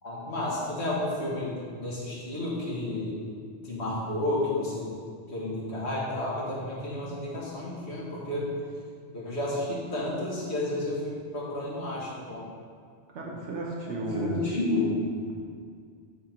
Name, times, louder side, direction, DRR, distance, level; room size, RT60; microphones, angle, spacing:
voice 1, 0.0-3.2 3.6-4.9 5.3-8.5 9.1-12.4 13.9-15.0, left 2 dB, 70° left, -6 dB, 1.9 m, -31 dB
voice 2, 13.1-14.4 15.3-15.4, right 2 dB, 80° right, -2 dB, 1.1 m, -33 dB
9.0 x 3.8 x 4.5 m, 2.1 s
omnidirectional pair, 1.2 m